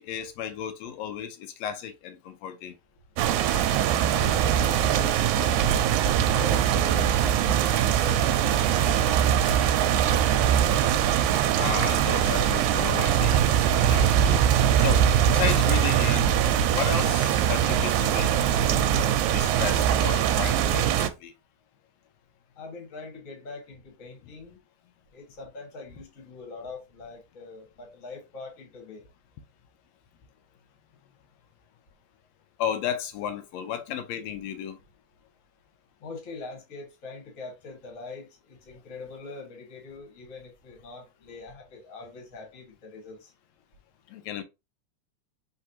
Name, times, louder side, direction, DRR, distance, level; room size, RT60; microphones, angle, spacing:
voice 1, 0.0-2.7 10.7-10.8 11.3-16.4 16.7-19.0 19.3-21.3 32.6-34.8 44.1-44.4, left 9 dB, 75° left, 1.7 m, -34 dB
sound 1, 3.2-21.1, right 9 dB, 80° right, 1.9 m, -22 dB
voice 2, 4.1-10.7 22.6-24.6 25.1-29.0 36.0-43.3, left 3 dB, 35° left, 1.5 m, -42 dB
4.7 x 3.3 x 2.7 m
omnidirectional pair, 3.5 m